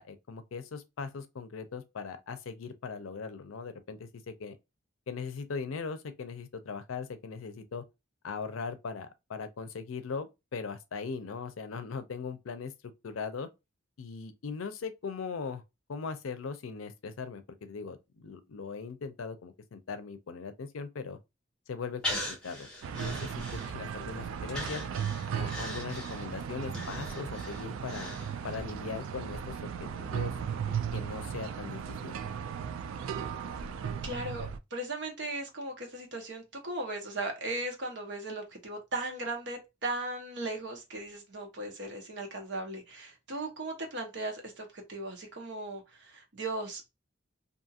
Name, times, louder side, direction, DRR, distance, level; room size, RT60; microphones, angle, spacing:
voice 1, 0.0-4.6 5.1-7.8 8.2-12.7 13.0-13.5 14.0-15.6 15.9-21.2 21.7-22.7 22.9-23.4 23.7-24.8 25.3-28.2 28.4-30.3 30.7-32.1, left 5 dB, 85° left, 0.5 m, -39 dB
Breathing, 22.0-24.0 24.5-28.7 29.0-29.1, left 1 dB, 5° left, 0.8 m, -40 dB
sound 1, 22.8-34.6, right 7 dB, 85° right, 0.3 m, -36 dB
voice 2, 34.0-46.9, right 2 dB, 60° right, 0.9 m, -37 dB
2.6 x 2.4 x 2.7 m
head